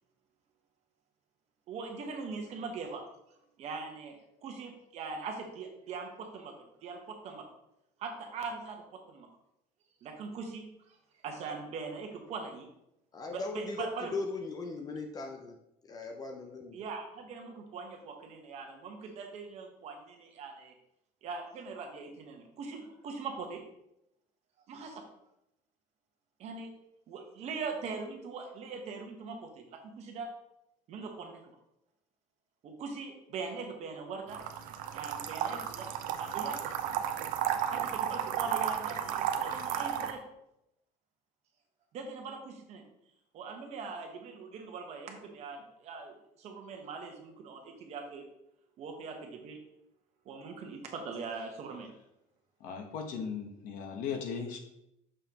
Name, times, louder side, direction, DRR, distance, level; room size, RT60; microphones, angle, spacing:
voice 1, 1.7-3.0 3.6-4.2 4.4-7.4 8.0-9.3 10.0-11.0 11.2-12.7 13.3-14.1 16.7-20.7 21.2-23.6 24.7-25.0 26.4-26.7 27.1-30.3 30.9-31.4 32.6-34.4 34.9-35.9 36.2-36.6 37.7-40.2 41.9-42.8 43.3-48.2 48.8-49.6 50.2-51.9, right 4 dB, 50° right, 3 dB, 1.1 m, -41 dB
voice 2, 13.1-15.5 15.9-16.8, left 3 dB, 25° left, 3 dB, 0.5 m, -38 dB
sound 1, 34.3-40.1, right 9 dB, 70° right, 0.6 m, -33 dB
voice 3, 52.6-54.6, left 6 dB, 70° left, 4 dB, 1.1 m, -37 dB
6.7 x 5.7 x 2.9 m, 0.83 s
cardioid pair, 165°, 14 cm